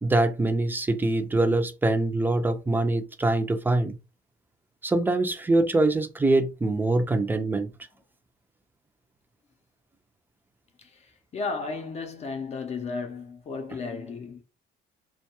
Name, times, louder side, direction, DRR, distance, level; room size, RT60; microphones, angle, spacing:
voice 1, 0.0-4.0 4.8-7.7, right 2 dB, 10° right, 0.4 m, -24 dB
voice 2, 10.8-14.4, left 4 dB, 40° left, 0.6 m, -34 dB
2.2 x 2.2 x 2.9 m
cardioid pair, 110°, 17 cm